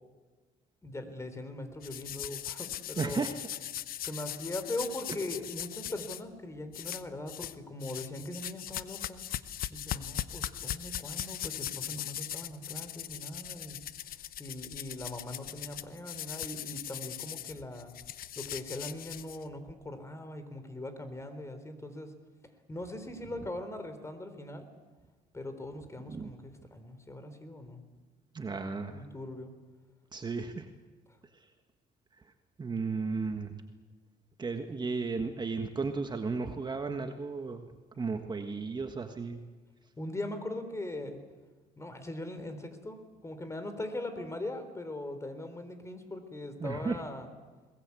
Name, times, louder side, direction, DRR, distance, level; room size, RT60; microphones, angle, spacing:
voice 1, 0.8-3.2 4.0-9.2 9.7-13.8 14.4-17.9 18.4-22.1 22.7-24.7 25.3-27.8 28.9-29.5 40.0-41.2 41.8-43.0 43.2-47.3, left 1 dB, 15° left, 9 dB, 3.6 m, -40 dB
sound 1, 1.8-6.2 6.7-7.6 7.8-19.7, left 11 dB, 60° left, 0.9 m, -40 dB
voice 2, 3.0-3.3 26.1-26.3 28.3-29.0 30.1-30.7 32.6-33.6 34.4-37.6 38.0-39.4 46.6-47.0, right 4 dB, 25° right, 6 dB, 1.5 m, -34 dB
21.5 x 20.5 x 8.4 m, 1.4 s
cardioid pair, 110°, 17 cm